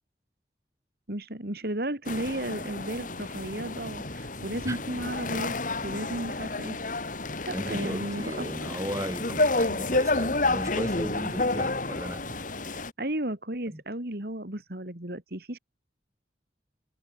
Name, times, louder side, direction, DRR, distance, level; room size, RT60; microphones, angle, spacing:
voice 1, 1.1-5.6 5.8-6.8 7.5-8.5 12.6-15.6, right 1 dB, 60° right, 3.1 m, -34 dB
sound 1, 2.1-12.9, left 2 dB, 50° left, 2.9 m, -30 dB
voice 2, 7.5-12.3 13.7-13.8, right 1 dB, 20° right, 4.9 m, -36 dB
head